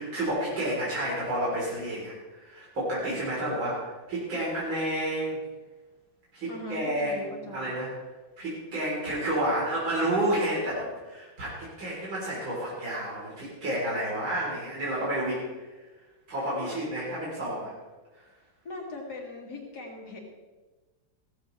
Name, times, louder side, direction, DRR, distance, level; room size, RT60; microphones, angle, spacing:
voice 1, 0.0-5.4 6.3-7.9 8.4-15.7 16.3-17.7, right 1 dB, 90° right, -7 dB, 4.7 m, -30 dB
voice 2, 6.5-7.7 9.1-9.2 16.5-16.8 18.6-20.2, left 2 dB, 55° left, -1 dB, 3.2 m, -40 dB
16.5 x 14.5 x 3.3 m, 1.2 s
omnidirectional pair, 2.1 m